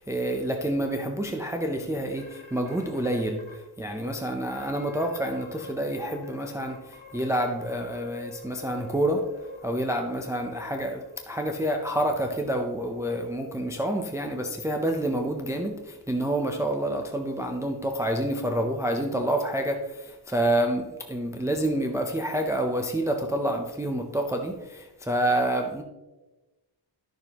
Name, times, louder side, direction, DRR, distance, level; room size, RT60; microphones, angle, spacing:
voice 1, 0.0-9.3 9.6-25.8, right 1 dB, 5° right, 0.5 m, -28 dB
sound 1, 2.2-3.5 4.0-4.1 4.5-5.7 6.0-11.2, left 3 dB, 80° left, 1.5 m, -45 dB
11.5 x 6.7 x 2.9 m
wide cardioid pair, 145°, 46 cm